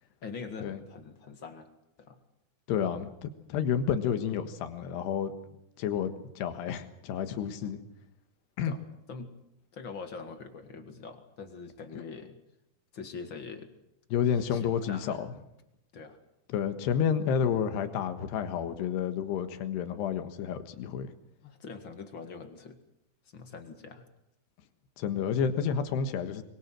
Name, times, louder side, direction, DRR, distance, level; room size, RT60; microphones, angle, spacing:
voice 1, 0.2-1.7 2.0-2.2 8.6-8.8 9.1-9.3 9.7-12.4 12.9-13.7 14.5-15.2 15.9-16.2 21.4-22.8 23.3-24.0, left 5 dB, 40° left, 7 dB, 1.9 m, -43 dB
voice 2, 2.7-5.3 5.8-7.8 8.6-8.7 14.1-15.3 16.5-21.1 25.0-26.4, left 8 dB, 85° left, 9 dB, 3.6 m, -30 dB
24.0 x 23.5 x 7.6 m, 0.84 s
omnidirectional pair, 4.7 m